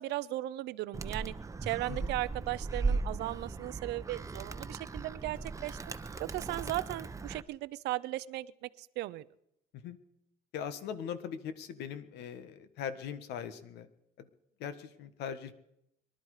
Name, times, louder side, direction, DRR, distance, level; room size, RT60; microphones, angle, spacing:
voice 1, 0.0-1.3 1.6-5.8 6.2-9.2, right 17 dB, 85° right, 17 dB, 0.7 m, -37 dB
Animal, 0.9-7.4, right 3 dB, 20° right, 0.8 m, -37 dB
voice 2, 10.5-13.9 14.2-14.3 14.6-15.5, left 8 dB, 80° left, 11 dB, 1.5 m, -40 dB
23.5 x 12.0 x 4.9 m, 0.79 s
cardioid pair, 110°, 17 cm